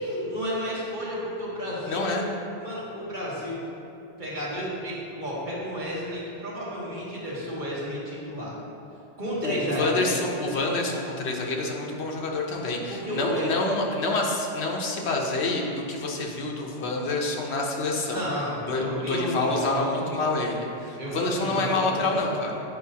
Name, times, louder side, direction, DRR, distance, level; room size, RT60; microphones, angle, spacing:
voice 1, 0.0-2.2 2.6-3.6 4.2-8.5 9.2-10.1 12.6-13.5 18.1-20.1 21.0-22.3, equal, 45° right, -7 dB, 1.3 m, -32 dB
voice 2, 1.8-2.3 9.4-18.2 18.7-22.6, left 2 dB, 65° left, 0 dB, 1.0 m, -27 dB
7.9 x 4.6 x 2.8 m, 2.7 s
omnidirectional pair, 1.2 m